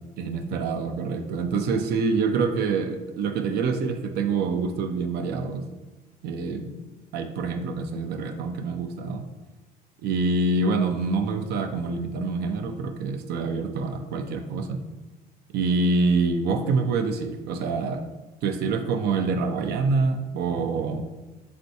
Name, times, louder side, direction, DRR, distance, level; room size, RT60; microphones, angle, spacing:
voice 1, 0.2-5.7 6.2-6.7 7.1-9.3 10.0-14.8 15.5-18.0 18.4-21.0, right 4 dB, 70° right, 6 dB, 0.4 m, -26 dB
4.2 x 3.4 x 2.7 m, 1.2 s
cardioid pair, 110°, 17 cm